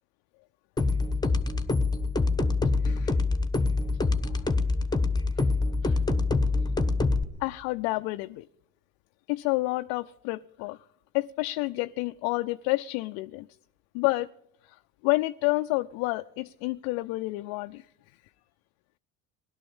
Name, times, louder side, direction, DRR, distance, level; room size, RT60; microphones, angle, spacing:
sound 1, 0.8-7.2, left 3 dB, 10° left, 1.1 m, -25 dB
voice 1, 2.8-3.2 4.2-4.4 5.4-5.5 5.8-6.0 7.4-8.5 9.3-10.8 11.1-13.5 13.9-14.3 14.6-17.9, left 21 dB, 65° left, 10 dB, 0.5 m, -29 dB
17.0 x 12.0 x 7.1 m, 0.78 s
hypercardioid pair, 70°, 39 cm